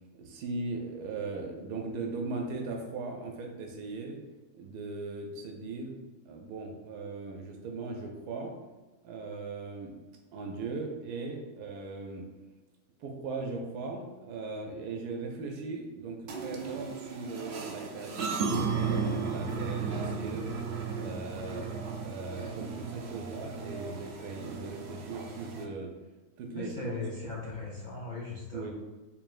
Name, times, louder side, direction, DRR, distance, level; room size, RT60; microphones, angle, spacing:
voice 1, 0.1-4.2 4.5-6.0 6.3-8.5 9.0-9.9 10.3-12.3 13.0-20.5 20.9-21.7 22.0-25.9 26.4-27.0 28.5-28.7, right 3 dB, 90° right, 1 dB, 1.1 m, -38 dB
sound 1, 16.3-25.6, right 5 dB, 65° right, 0.6 m, -35 dB
voice 2, 26.6-28.7, left 3 dB, 75° left, -5 dB, 0.4 m, -38 dB
4.6 x 3.2 x 2.4 m, 1.2 s
omnidirectional pair, 1.6 m